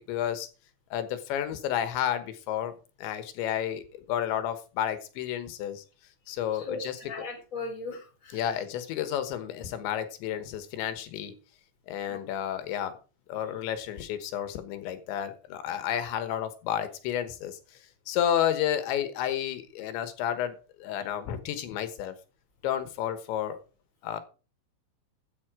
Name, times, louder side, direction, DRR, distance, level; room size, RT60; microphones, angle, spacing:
voice 1, 0.1-0.5 0.9-2.7 3.0-5.9 6.3-7.0 8.3-11.3 11.9-13.0 13.3-17.6 18.1-22.2 22.6-23.6 24.0-24.2, left 10 dB, 85° left, 10 dB, 3.7 m, -31 dB
voice 2, 6.5-8.4 12.1-12.2, left 3 dB, 20° left, 1 dB, 3.7 m, -38 dB
14.0 x 7.1 x 5.0 m, 0.35 s
omnidirectional pair, 5.1 m